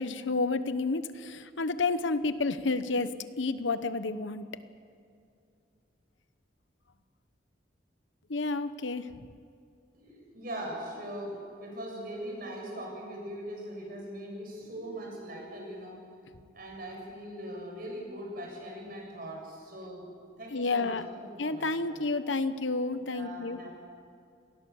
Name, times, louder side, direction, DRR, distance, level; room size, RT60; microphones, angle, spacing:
voice 1, 0.0-4.5 8.3-9.3 20.5-21.0 21.4-23.6, left 3 dB, 85° left, 12 dB, 1.0 m, -30 dB
voice 2, 9.9-16.0 16.5-20.0 20.4-22.0 23.1-23.7, right 1 dB, 50° right, -1 dB, 7.3 m, -41 dB
27.0 x 19.0 x 7.1 m, 2.4 s
head